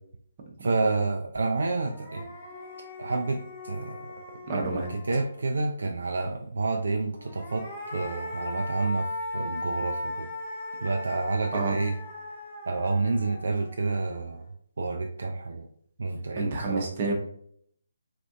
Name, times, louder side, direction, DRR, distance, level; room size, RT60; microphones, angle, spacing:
voice 1, 0.6-2.3 3.0-4.1 4.5-7.6 7.9-9.1 9.3-10.3 10.8-12.0 12.7-14.4 14.8-15.7 16.0-16.9, right 3 dB, 65° right, 4 dB, 0.3 m, -29 dB
sound 1, 1.4-1.5 1.8-5.5 7.1-14.4, left 2 dB, 20° left, 0.7 m, -38 dB
voice 2, 4.5-4.9 11.5-11.8 16.4-17.1, right 3 dB, 35° right, 1 dB, 0.7 m, -29 dB
3.4 x 2.5 x 2.3 m, 0.67 s
figure-of-eight pair, 145°, 0 cm